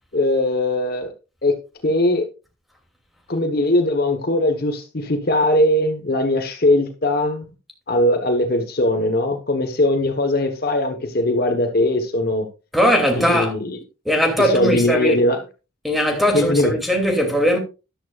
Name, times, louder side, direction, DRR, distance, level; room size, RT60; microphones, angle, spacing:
voice 1, 0.1-1.1 1.4-1.5 1.8-2.2 3.3-7.4 7.9-12.5 13.2-13.8 14.4-15.4 16.3-16.7, left 1 dB, 50° left, 1.3 m, -20 dB
voice 2, 12.7-13.5 14.0-15.2 15.8-17.6, equal, ahead, 2.8 m, -19 dB
13.0 x 11.5 x 2.5 m
head